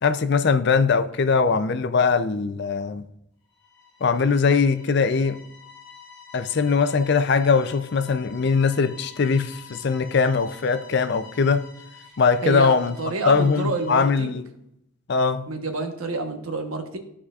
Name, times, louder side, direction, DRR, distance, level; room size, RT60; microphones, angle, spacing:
voice 1, 0.0-3.0 4.0-5.4 6.3-11.6 12.2-13.0 13.3-14.4 15.1-15.5, left 5 dB, 55° left, 0.5 m, -21 dB
sound 1, 3.5-14.3, left 6 dB, 20° left, 1.7 m, -48 dB
voice 2, 12.4-14.4 15.5-17.0, right 3 dB, 85° right, 1.1 m, -28 dB
14.0 x 4.9 x 2.4 m
head